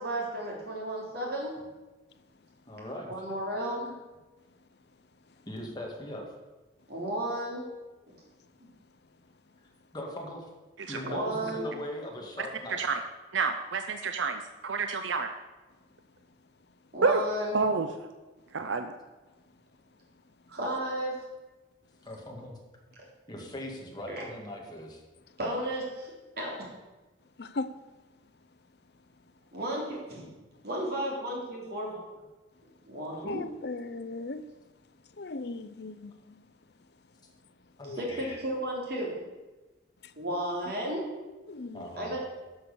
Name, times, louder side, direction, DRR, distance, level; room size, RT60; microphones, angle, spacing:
voice 1, 0.0-1.6 3.1-3.9 6.9-7.7 11.0-11.7 16.9-17.6 20.5-21.2 24.1-24.2 25.4-26.1 26.4-26.7 29.5-30.3 30.6-31.9 32.9-33.4 37.9-39.2 40.2-41.0 42.0-42.2, right 1 dB, 55° right, 3.5 m, -33 dB
voice 2, 2.7-3.1 5.5-6.2 9.9-10.5 10.9-12.8 22.0-22.6 23.3-25.0 37.8-38.4 41.7-42.2, left 1 dB, 20° left, 2.1 m, -40 dB
voice 3, 13.3-15.3 17.0-17.2 17.5-17.9 18.5-18.9, right 4 dB, 80° right, 0.7 m, -28 dB
voice 4, 27.4-27.7 33.3-34.4 35.2-36.4 37.8-38.0 41.5-41.9, left 3 dB, 60° left, 0.6 m, -37 dB
12.0 x 6.3 x 6.8 m
head